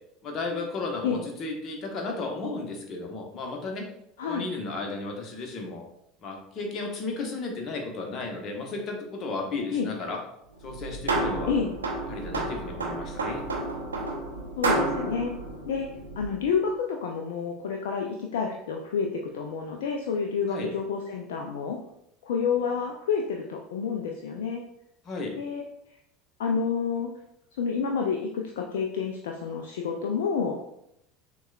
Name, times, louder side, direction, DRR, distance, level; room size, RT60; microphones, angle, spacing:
voice 1, 0.2-3.9 4.2-5.9 6.2-10.2 10.6-11.5 12.1-13.4 20.5-20.7 25.0-25.4, left 3 dB, 40° left, 2 dB, 0.9 m, -34 dB
knock on the metal lattice, 10.6-16.5, right 2 dB, 75° right, 0.5 m, -31 dB
voice 2, 14.6-15.3 15.7-15.9 16.2-21.8 22.2-24.6 25.4-25.6 26.4-27.1 27.6-30.6, left 6 dB, 65° left, 1 dB, 0.3 m, -29 dB
6.0 x 2.3 x 2.2 m, 0.76 s
figure-of-eight pair, 70°, 0 cm